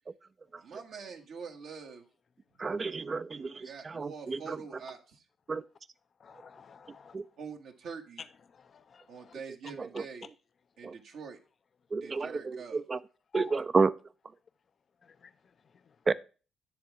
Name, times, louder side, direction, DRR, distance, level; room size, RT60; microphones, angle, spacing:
voice 1, 0.6-2.0 3.6-5.0 7.4-8.2 9.1-10.3 10.8-11.4 12.0-12.8, right 5 dB, 75° right, 1.4 m, -44 dB
voice 2, 2.6-4.6 5.5-5.6 7.1-7.2 9.8-10.0 10.8-11.0 11.9-13.0 13.3-13.9 16.1-16.2, right 4 dB, 40° right, 0.4 m, -30 dB
voice 3, 6.2-7.2 8.2-9.3 13.3-13.6 15.0-15.3 15.7-16.0, left 5 dB, 50° left, 0.5 m, -49 dB
10.0 x 3.5 x 5.8 m
supercardioid pair, 60°, 0 cm